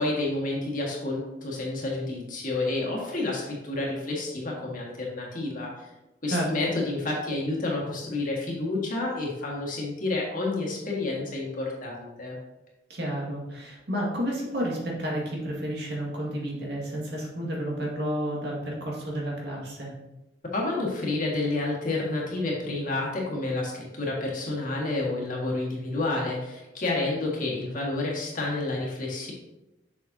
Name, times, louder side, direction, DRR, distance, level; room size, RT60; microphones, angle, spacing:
voice 1, 0.0-5.9 6.2-12.4 20.5-29.3, left 2 dB, 50° left, -2 dB, 1.8 m, -29 dB
voice 2, 12.9-19.9, equal, 65° right, -2 dB, 1.9 m, -31 dB
7.2 x 6.3 x 2.8 m, 0.99 s
head